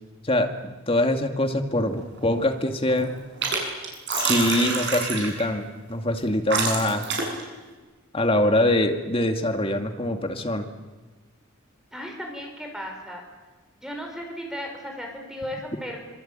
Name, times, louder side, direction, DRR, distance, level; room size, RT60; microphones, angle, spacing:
voice 1, 0.2-3.1 4.1-7.1 8.1-10.7, left 1 dB, 25° left, 5 dB, 2.3 m, -24 dB
sound 1, 1.9-2.4 2.7-3.6 3.8-5.5 6.2-6.3 6.5-7.4, right 4 dB, 55° right, 7.7 m, -27 dB
voice 2, 11.9-13.2 13.8-16.0, equal, 5° right, 2 dB, 5.7 m, -35 dB
26.0 x 25.5 x 9.1 m, 1.3 s
head